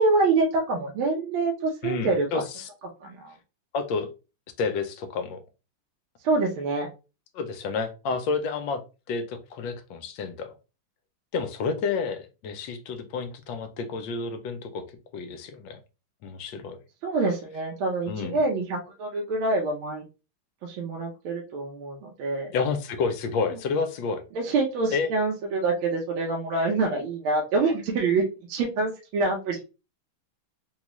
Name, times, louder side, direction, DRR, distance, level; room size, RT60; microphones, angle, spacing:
voice 1, 0.0-2.4 3.0-3.3 6.2-6.9 17.0-20.0 20.6-22.5 24.3-29.6, right 3 dB, 85° right, 1.5 m, -26 dB
voice 2, 1.8-2.7 3.7-4.1 4.6-5.4 7.3-8.8 9.1-10.5 11.3-14.9 15.1-15.8 16.2-16.8 18.1-18.4 22.5-24.2 24.9-25.1, left 5 dB, 75° left, 1.3 m, -30 dB
4.0 x 2.3 x 3.0 m
omnidirectional pair, 2.2 m